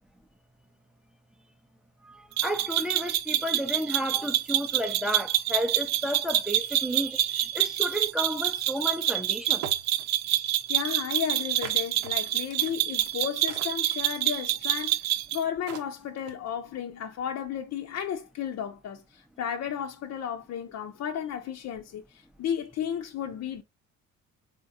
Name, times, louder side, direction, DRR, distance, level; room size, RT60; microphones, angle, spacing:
voice 1, 2.0-9.7, equal, ahead, 0.7 m, -32 dB
sound 1, 2.4-15.4, right 13 dB, 55° right, 0.5 m, -27 dB
sound 2, 9.0-9.1 9.6-10.0 11.6-14.3 15.3-15.4 15.7-16.5, right 8 dB, 80° right, 1.0 m, -41 dB
voice 2, 10.7-23.6, left 9 dB, 50° left, 0.7 m, -33 dB
3.8 x 3.6 x 2.6 m
supercardioid pair, 80°, 35 cm